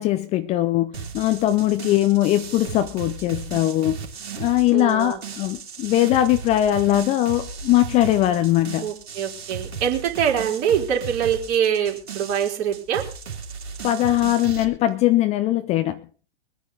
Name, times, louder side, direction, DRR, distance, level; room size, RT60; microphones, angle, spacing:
voice 1, 0.0-4.1 4.4-8.9 13.8-16.0, left 14 dB, 20° left, 0.5 m, -21 dB
sound 1, 0.9-14.6, right 6 dB, 65° right, 2.9 m, -36 dB
voice 2, 4.7-5.2 8.8-13.0, right 8 dB, 40° right, 3.9 m, -24 dB
23.5 x 9.7 x 4.0 m
figure-of-eight pair, 110°, 33 cm